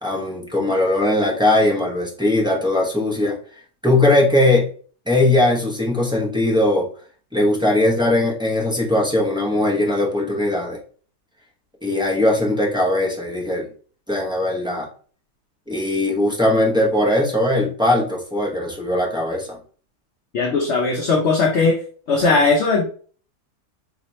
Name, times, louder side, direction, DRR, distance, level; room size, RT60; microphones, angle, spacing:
voice 1, 0.0-3.4 3.8-4.7 5.1-6.9 7.3-10.8 11.8-13.7 14.1-14.9 15.7-19.6, left 1 dB, 5° right, -2 dB, 0.5 m, -19 dB
voice 2, 20.3-21.8 22.1-22.9, left 3 dB, 55° left, -1 dB, 0.9 m, -18 dB
4.9 x 2.9 x 3.1 m, 0.43 s
omnidirectional pair, 1.7 m